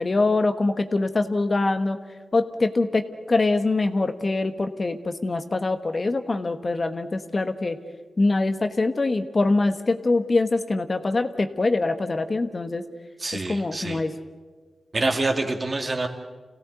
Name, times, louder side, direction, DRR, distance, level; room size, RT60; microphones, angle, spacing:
voice 1, 0.0-2.0 2.3-7.8 8.2-12.8 13.3-14.2, left 3 dB, 40° left, 8 dB, 1.3 m, -24 dB
voice 2, 13.2-14.0 14.9-16.1, right 2 dB, 40° right, 4 dB, 2.4 m, -26 dB
26.5 x 17.0 x 8.2 m, 1.5 s
cardioid pair, 70°, 0 cm